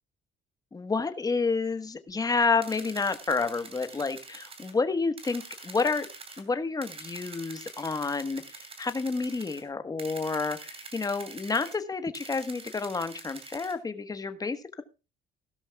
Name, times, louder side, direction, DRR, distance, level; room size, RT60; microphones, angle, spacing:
voice 1, 0.7-6.1 6.4-14.8, left 4 dB, 20° left, 10 dB, 1.4 m, -29 dB
sound 1, 2.6-4.7 5.2-6.4 6.8-9.6 10.0-11.8 12.1-13.7, right 3 dB, 30° right, 3.0 m, -45 dB
16.5 x 13.0 x 2.3 m, 0.30 s
cardioid pair, 140°, 19 cm